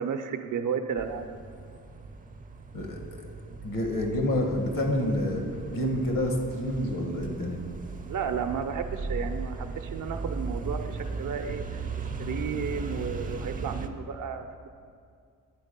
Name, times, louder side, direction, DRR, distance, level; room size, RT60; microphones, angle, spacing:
voice 1, 0.0-1.4 8.0-14.7, right 6 dB, 65° right, 7 dB, 0.6 m, -33 dB
sound 1, 1.0-13.9, right 3 dB, 25° right, 0.5 m, -37 dB
voice 2, 2.7-3.2 3.6-7.6, left 1 dB, 70° left, 2 dB, 1.3 m, -28 dB
9.2 x 4.0 x 5.2 m, 2.2 s
cardioid pair, 70°, 34 cm